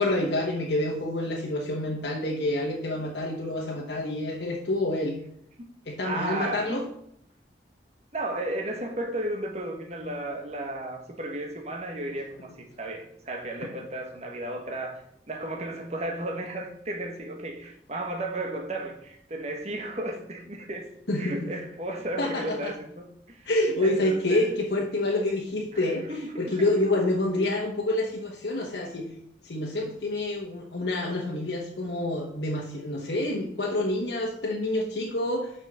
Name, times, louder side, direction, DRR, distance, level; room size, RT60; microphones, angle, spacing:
voice 1, 0.0-5.1 5.9-6.8 21.1-21.5 22.2-22.7 23.5-26.0 26.4-29.1 29.4-35.5, left 1 dB, 75° left, 1.1 m, -27 dB
voice 2, 6.0-6.8 8.1-15.0 15.3-20.9 21.2-23.5 23.8-24.5 25.7-26.7, right 1 dB, 40° right, 1.3 m, -34 dB
6.4 x 5.6 x 6.7 m
head